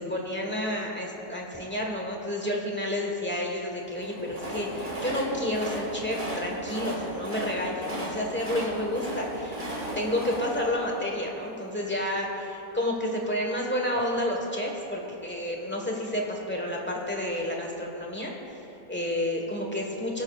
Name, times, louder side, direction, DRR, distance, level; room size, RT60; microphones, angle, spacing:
voice 1, 0.0-9.7 9.9-20.2, left 1 dB, 10° left, -1 dB, 1.2 m, -30 dB
Train, 3.8-12.0, right 1 dB, 35° right, 1.7 m, -36 dB
21.0 x 9.4 x 2.4 m, 2.9 s
omnidirectional pair, 1.6 m